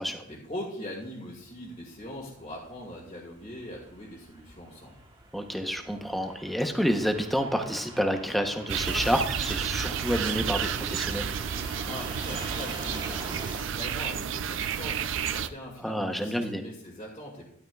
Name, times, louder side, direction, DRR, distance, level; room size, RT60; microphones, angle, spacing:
voice 1, 0.0-4.9 11.8-17.4, left 1 dB, 30° left, -4 dB, 2.0 m, -41 dB
Fixed-wing aircraft airplane, 1.4-13.6, right 2 dB, 20° right, 1.0 m, -43 dB
voice 2, 5.3-11.3 15.8-16.6, equal, ahead, 5 dB, 0.8 m, -29 dB
sound 1, 8.7-15.5, right 8 dB, 65° right, 0.4 m, -31 dB
12.5 x 11.5 x 2.3 m, 0.72 s
head